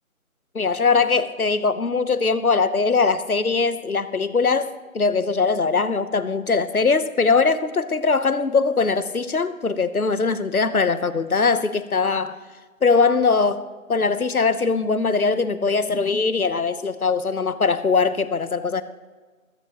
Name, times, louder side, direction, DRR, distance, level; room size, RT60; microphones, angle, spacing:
voice 1, 0.5-12.4 12.8-13.6 13.9-18.8, left 4 dB, 85° left, 13 dB, 1.0 m, -21 dB
21.5 x 10.0 x 3.0 m, 1.4 s
figure-of-eight pair, 165°, 42 cm